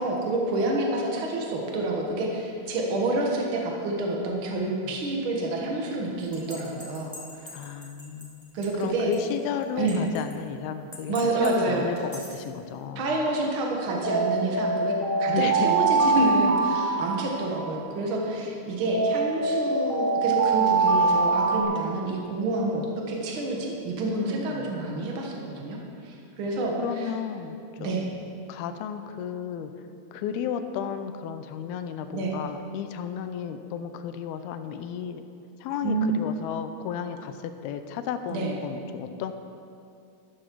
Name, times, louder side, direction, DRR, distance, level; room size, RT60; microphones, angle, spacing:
voice 1, 0.0-7.1 7.4-7.5 8.5-9.1 9.8-10.0 11.1-11.9 12.9-25.8 26.0-27.1 27.8-28.1 32.1-32.3 35.8-36.2 38.3-38.5, right 2 dB, 75° right, -1 dB, 1.2 m, -28 dB
voice 2, 4.4-5.0 7.5-8.5 8.8-13.1 15.3-15.8 24.1-24.7 26.8-28.1 28.5-29.7 30.1-35.2 35.6-39.3, left 8 dB, 80° left, 9 dB, 2.5 m, -33 dB
sound 1, 6.3-8.2 8.6-8.7 9.1-9.2 9.9-10.3 10.9-11.5 12.0-12.3 14.0-17.8 18.9-21.6, right 4 dB, 10° left, 1.2 m, -24 dB
13.0 x 12.5 x 4.6 m, 2.5 s
omnidirectional pair, 4.6 m